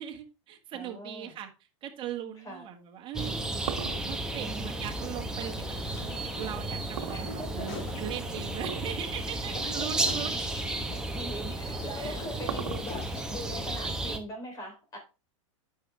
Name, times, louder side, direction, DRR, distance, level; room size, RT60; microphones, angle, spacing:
voice 1, 0.0-1.5 1.8-3.4 4.0-10.4 11.9-12.5, right 9 dB, 30° right, 3 dB, 1.8 m, -39 dB
voice 2, 0.7-1.4 2.4-2.6 4.4-4.9 7.1-8.0 9.5-10.2 11.1-15.0, equal, 20° left, 3 dB, 3.6 m, -41 dB
sound 1, 3.1-14.2, right 2 dB, 5° right, 1.1 m, -33 dB
sound 2, 3.1-5.6 7.0-7.8 8.6-9.0 9.3-9.4 10.2-10.3 11.7-13.2, right 10 dB, 75° right, 1.3 m, -38 dB
sound 3, 5.4-8.5 8.9-13.3, left 5 dB, 55° left, 2.9 m, -46 dB
9.7 x 6.0 x 3.4 m, 0.30 s
supercardioid pair, 135°, 17 cm